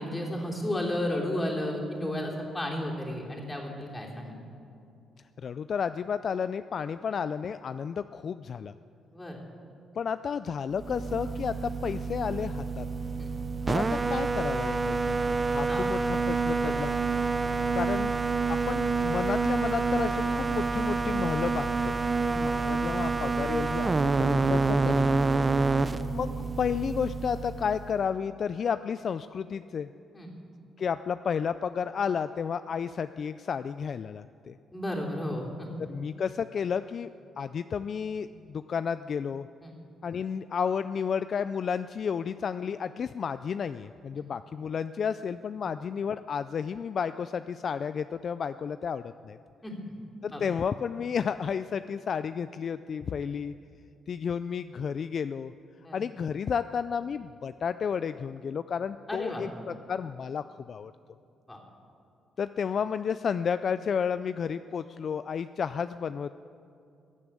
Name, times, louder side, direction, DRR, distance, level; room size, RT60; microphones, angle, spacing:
voice 1, 0.0-4.4 9.1-9.4 13.2-13.3 15.7-15.9 16.6-16.8 24.8-24.9 30.1-30.3 34.7-35.7 39.6-39.7 49.6-49.7 50.3-50.4 55.8-56.0 59.1-59.5 61.5-61.6, left 1 dB, 15° left, -2 dB, 3.2 m, -33 dB
voice 2, 5.4-8.7 10.0-12.9 13.7-15.2 15.5-16.9 17.7-18.2 18.5-21.9 22.3-25.1 26.1-29.9 30.8-34.6 35.9-37.1 37.4-39.5 40.0-49.4 50.2-53.5 54.1-55.5 55.9-60.9 62.4-66.3, left 7 dB, 50° left, 12 dB, 0.3 m, -32 dB
sound 1, 10.8-28.0, right 4 dB, 25° right, 0.6 m, -28 dB
15.0 x 8.7 x 8.5 m, 2.6 s
cardioid pair, 90°, 0 cm